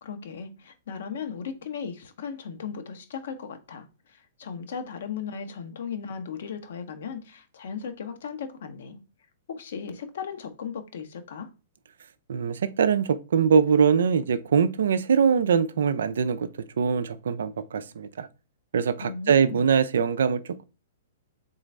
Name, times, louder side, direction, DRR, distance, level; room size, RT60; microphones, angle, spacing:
voice 1, 0.0-9.0 9.5-11.5 19.0-19.6, left 6 dB, 55° left, 0.9 m, -37 dB
voice 2, 12.3-16.5 16.8-18.3 18.7-20.6, right 6 dB, 60° right, 0.4 m, -23 dB
4.0 x 3.9 x 3.2 m
figure-of-eight pair, 110°, 0 cm